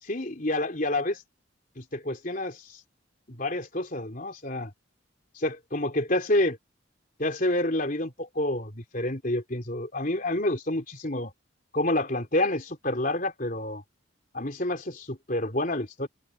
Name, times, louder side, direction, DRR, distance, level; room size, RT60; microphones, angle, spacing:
voice 1, 0.0-1.2 1.8-2.8 3.3-4.7 5.4-6.6 7.2-11.3 11.7-13.8 14.3-16.1, left 1 dB, 40° left, 3.8 m, -28 dB
open air
head